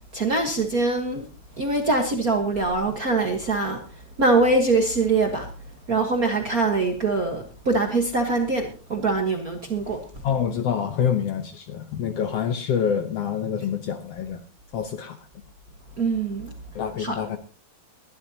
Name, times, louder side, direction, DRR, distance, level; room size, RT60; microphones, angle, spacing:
voice 1, 0.1-1.3 1.6-5.5 5.9-10.0 16.0-16.5 17.0-17.2, right 3 dB, 45° right, 3 dB, 1.3 m, -23 dB
voice 2, 10.2-14.4 14.7-15.2 16.7-17.4, left 8 dB, 70° left, 9 dB, 1.6 m, -26 dB
21.5 x 12.0 x 2.8 m, 0.33 s
omnidirectional pair, 3.5 m